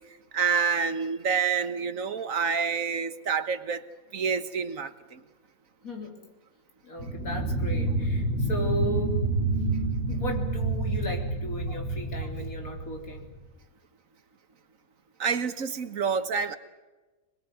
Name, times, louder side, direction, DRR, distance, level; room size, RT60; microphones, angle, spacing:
voice 1, 0.3-3.9 4.1-5.2 11.7-11.8 15.2-16.6, right 6 dB, 70° right, 10 dB, 1.7 m, -28 dB
voice 2, 5.8-6.2 6.8-9.2 10.1-13.3, equal, 80° left, 2 dB, 4.1 m, -35 dB
sound 1, 7.0-13.4, right 2 dB, 60° left, 6.5 m, -28 dB
27.0 x 21.0 x 9.5 m, 1.2 s
omnidirectional pair, 1.5 m